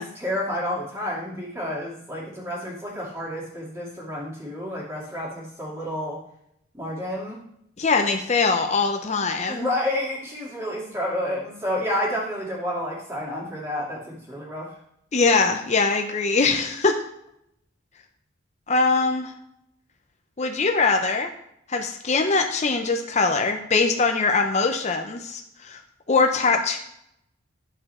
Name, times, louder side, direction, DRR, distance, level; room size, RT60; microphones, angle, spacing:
voice 1, 0.0-6.2 6.7-7.4 9.5-14.7, left 1 dB, 15° right, -5 dB, 2.3 m, -30 dB
voice 2, 7.8-9.7 15.1-17.0 18.7-19.3 20.4-21.3 21.7-25.8 26.1-26.8, left 4 dB, 35° left, 5 dB, 0.7 m, -22 dB
9.9 x 4.6 x 4.3 m, 0.76 s
head